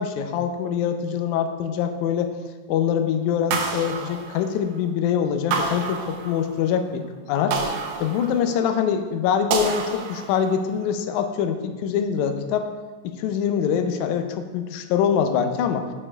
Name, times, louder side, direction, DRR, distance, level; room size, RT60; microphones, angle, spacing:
voice 1, 0.0-2.3 2.7-7.6 8.0-12.7 13.0-15.9, left 8 dB, 80° left, 6 dB, 1.8 m, -24 dB
sound 1, 3.5-4.9 5.5-6.7 7.5-8.7 9.5-10.7, right 5 dB, 75° right, 1.6 m, -29 dB
8.6 x 6.4 x 2.3 m, 1.3 s
omnidirectional pair, 3.7 m